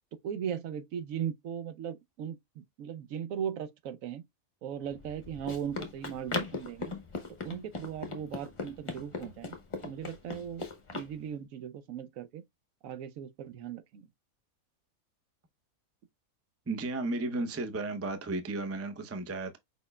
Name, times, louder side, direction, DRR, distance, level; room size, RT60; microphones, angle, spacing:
voice 1, 0.1-4.2 4.6-6.9 7.4-9.5 9.8-12.4 12.8-14.1, right 8 dB, 75° right, 1.0 m, -38 dB
Run, 4.9-11.1, left 3 dB, 25° left, 0.8 m, -39 dB
voice 2, 16.7-19.6, right 2 dB, 25° right, 0.3 m, -34 dB
5.0 x 4.3 x 2.2 m
omnidirectional pair, 1.5 m